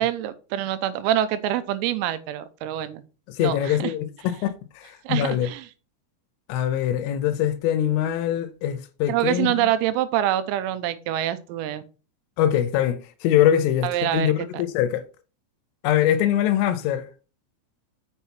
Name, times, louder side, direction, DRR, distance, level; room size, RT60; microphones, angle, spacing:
voice 1, 0.0-3.0 3.4-3.9 5.1-5.7 9.1-11.9 13.8-14.6, right 12 dB, 85° right, 3.5 m, -25 dB
voice 2, 3.3-5.5 6.5-9.7 12.4-15.0 15.8-17.1, left 11 dB, 80° left, 3.3 m, -23 dB
7.0 x 6.4 x 4.3 m
omnidirectional pair, 6.0 m